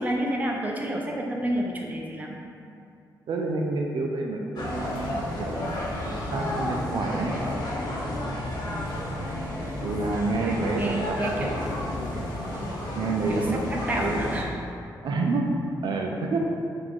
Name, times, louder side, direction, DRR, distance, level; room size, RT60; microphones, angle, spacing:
voice 1, 0.0-2.4 10.4-11.9 13.3-14.6, right 1 dB, 20° right, -1 dB, 0.5 m, -30 dB
voice 2, 3.3-5.7 6.0-7.4 9.8-11.7 12.9-13.6 13.9-14.4 15.0-15.5 15.8-16.4, right 3 dB, 70° right, 0 dB, 0.4 m, -29 dB
sound 1, 4.6-14.4, left 1 dB, 60° left, 0.8 m, -31 dB
4.7 x 2.5 x 3.6 m, 2.5 s
cardioid pair, 105°, 8 cm